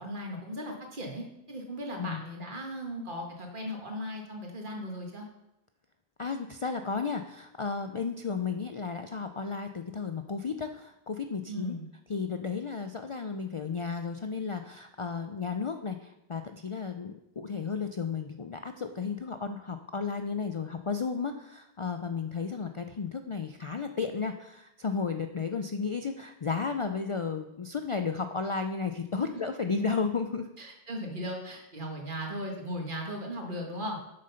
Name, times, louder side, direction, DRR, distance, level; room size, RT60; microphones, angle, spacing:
voice 1, 0.0-5.3 11.5-11.9 29.2-29.3 30.6-34.0, equal, 50° right, 1 dB, 1.7 m, -37 dB
voice 2, 6.2-11.8 12.1-30.5, left 5 dB, 45° left, 7 dB, 0.4 m, -33 dB
7.8 x 6.5 x 5.6 m, 0.88 s
omnidirectional pair, 1.1 m